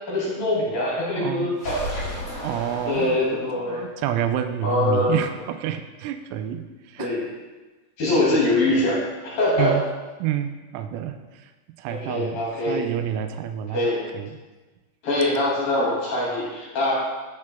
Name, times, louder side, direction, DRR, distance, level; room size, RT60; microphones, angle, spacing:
voice 1, 0.1-1.9 2.9-3.9 4.6-5.2 7.0-7.2 8.0-9.0 9.2-9.8 11.9-12.8 13.7-14.0 15.0-16.9, left 2 dB, 50° left, -7 dB, 3.6 m, -23 dB
voice 2, 1.1-1.5 2.3-7.2 9.6-9.8 10.2-11.5 11.8-13.9 14.1-14.4, right 10 dB, 85° right, 8 dB, 3.2 m, -29 dB
sound 1, 1.6-3.6, equal, 25° left, 2.3 m, -33 dB
12.0 x 7.5 x 2.2 m, 1.2 s
omnidirectional pair, 5.7 m